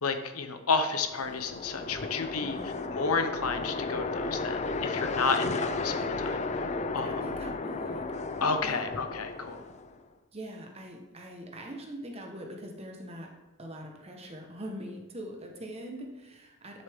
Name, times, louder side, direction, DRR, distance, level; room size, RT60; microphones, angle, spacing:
voice 1, 0.0-2.6 2.9-7.2 8.4-9.6, left 4 dB, 80° left, 7 dB, 1.0 m, -31 dB
sound 1, 0.9-10.0, left 3 dB, 30° left, 0.5 m, -34 dB
voice 2, 2.4-2.9 7.0-8.1 8.6-9.0 10.3-13.3 13.6-16.8, right 1 dB, 25° right, 1 dB, 1.3 m, -43 dB
12.0 x 6.8 x 3.7 m, 1.1 s
head